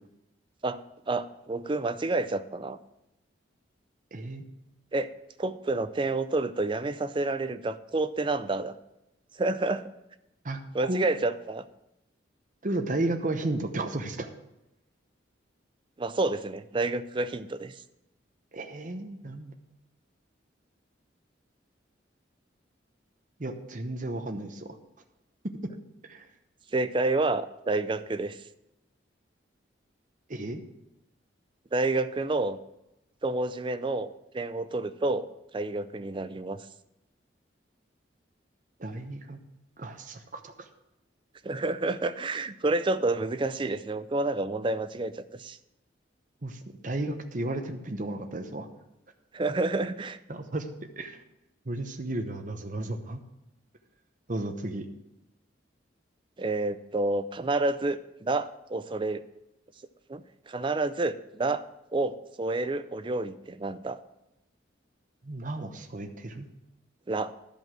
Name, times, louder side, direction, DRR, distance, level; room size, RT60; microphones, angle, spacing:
voice 1, 0.6-2.8 4.9-5.1 5.4-8.7 9.4-9.9 10.7-11.7 16.0-17.7 26.7-28.4 31.7-32.6 33.2-35.3 35.5-36.6 41.4-45.6 49.3-50.2 56.4-59.2 60.1-61.6 61.9-64.0 67.1-67.3, right 2 dB, 25° right, 12 dB, 0.4 m, -29 dB
voice 2, 4.1-4.4 10.4-11.1 12.6-14.3 18.5-19.5 23.4-24.8 26.1-26.3 30.3-30.6 38.8-39.4 39.8-40.7 46.4-48.7 50.3-50.7 51.0-51.2 51.7-53.2 54.3-54.9 65.2-66.5, right 2 dB, 45° right, 5 dB, 0.9 m, -33 dB
11.5 x 5.3 x 7.5 m, 0.90 s
head